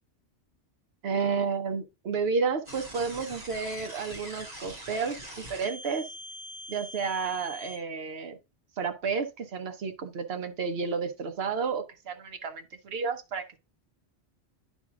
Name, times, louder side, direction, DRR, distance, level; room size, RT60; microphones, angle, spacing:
voice 1, 1.0-5.2 5.5-6.1 6.7-8.4 8.8-13.6, right 5 dB, 65° right, 1.1 m, -31 dB
sound 1, 2.6-7.7, equal, 40° right, 2.6 m, -43 dB
10.0 x 3.6 x 3.6 m
omnidirectional pair, 1.1 m